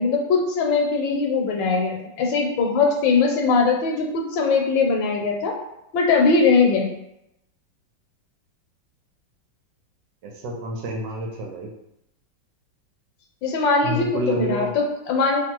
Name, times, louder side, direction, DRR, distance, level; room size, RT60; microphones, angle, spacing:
voice 1, 0.0-5.6 5.9-6.9 13.4-15.4, left 4 dB, 75° left, 1 dB, 1.3 m, -21 dB
voice 2, 10.2-11.7 13.8-14.7, equal, 75° right, 0 dB, 1.2 m, -28 dB
2.9 x 2.6 x 4.3 m, 0.83 s
omnidirectional pair, 2.1 m